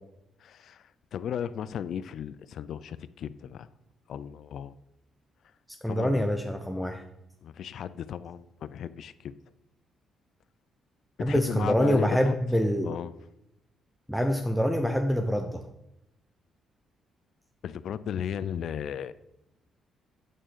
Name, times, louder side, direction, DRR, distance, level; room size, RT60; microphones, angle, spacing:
voice 1, 0.4-3.7 4.1-4.7 5.9-6.3 7.4-9.3 11.3-12.4 12.8-13.1 17.6-19.1, left 8 dB, 65° left, 16 dB, 0.4 m, -35 dB
voice 2, 5.8-7.0 11.2-13.0 14.1-15.6, equal, ahead, 5 dB, 0.7 m, -25 dB
8.7 x 3.7 x 6.7 m, 0.86 s
cardioid pair, 90°, 0 cm